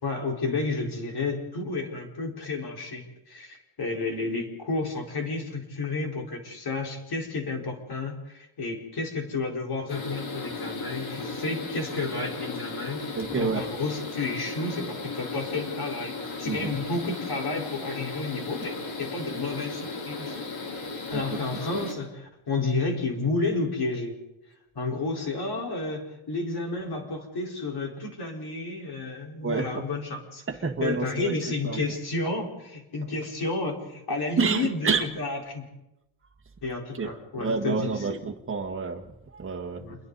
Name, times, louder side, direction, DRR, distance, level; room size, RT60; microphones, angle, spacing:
voice 1, 0.0-20.3 21.1-24.1 24.7-30.4 30.8-35.7 36.6-38.2 39.8-40.0, left 3 dB, 50° left, 0 dB, 5.0 m, -31 dB
sound 1, 9.9-21.9, left 3 dB, 70° left, 4.1 m, -36 dB
voice 2, 13.2-13.6 16.4-16.7 21.1-21.4 29.4-29.7 30.5-31.3 31.6-31.8 34.4-35.1 36.9-37.1 37.4-39.8, right 5 dB, 25° right, 2 dB, 1.7 m, -28 dB
29.0 x 22.0 x 4.2 m, 0.92 s
cardioid pair, 130°, 49 cm